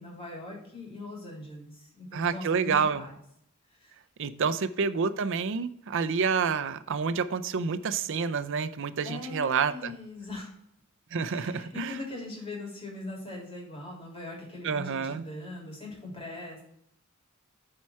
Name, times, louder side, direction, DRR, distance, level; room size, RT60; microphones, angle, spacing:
voice 1, 0.0-2.7 3.0-3.1 3.8-3.9 4.3-4.5 9.0-10.5 11.3-16.6, left 2 dB, 25° left, -3 dB, 3.2 m, -41 dB
voice 2, 2.1-3.0 4.2-9.9 11.1-12.0 14.6-15.2, right 5 dB, 60° right, 11 dB, 0.5 m, -28 dB
8.9 x 4.7 x 4.3 m, 0.72 s
head